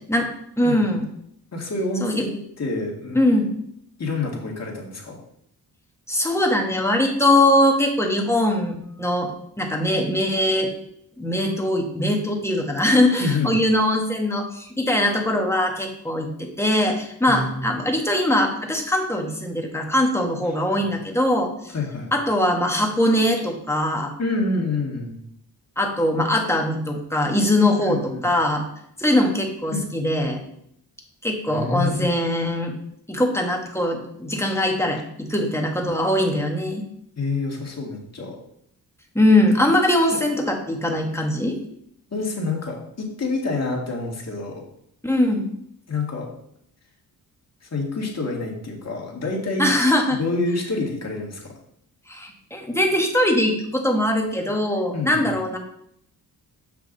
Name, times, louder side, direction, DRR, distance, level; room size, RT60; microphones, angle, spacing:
voice 1, 0.6-1.1 2.0-2.2 3.1-3.5 6.1-10.7 11.2-21.7 22.1-24.1 25.8-28.6 29.0-30.4 31.2-32.8 33.1-36.9 39.1-41.6 45.0-45.5 49.6-50.2 52.1-55.6, left 1 dB, 5° left, 1 dB, 1.5 m, -21 dB
voice 2, 1.5-3.2 4.0-5.2 13.2-13.6 17.3-17.7 20.7-20.8 21.7-22.1 24.2-25.2 27.8-28.2 29.7-29.8 31.5-32.1 37.2-38.4 42.1-44.6 45.9-46.3 47.7-49.7 50.1-51.5 54.9-55.3, left 3 dB, 40° left, -1 dB, 2.0 m, -27 dB
7.4 x 5.7 x 4.0 m, 0.72 s
cardioid pair, 90°, 38 cm